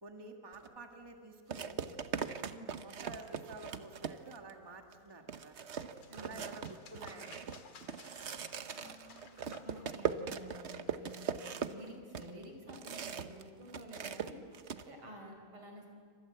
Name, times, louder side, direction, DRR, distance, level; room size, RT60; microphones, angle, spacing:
voice 1, 0.0-1.8 2.8-5.6 6.2-7.6, right 2 dB, 10° right, 4 dB, 1.8 m, -50 dB
sound 1, 0.5-0.7 1.5-4.5 4.9-5.0 5.3-13.4 13.7-14.8, right 7 dB, 50° right, 0.8 m, -40 dB
voice 2, 2.4-2.9 6.1-6.5 8.7-9.1 9.4-14.4 14.8-15.9, equal, 80° right, 3 dB, 5.5 m, -51 dB
sound 2, 5.1-12.6, left 6 dB, 85° left, 2.6 m, -59 dB
28.0 x 25.5 x 7.6 m, 2.1 s
omnidirectional pair, 2.3 m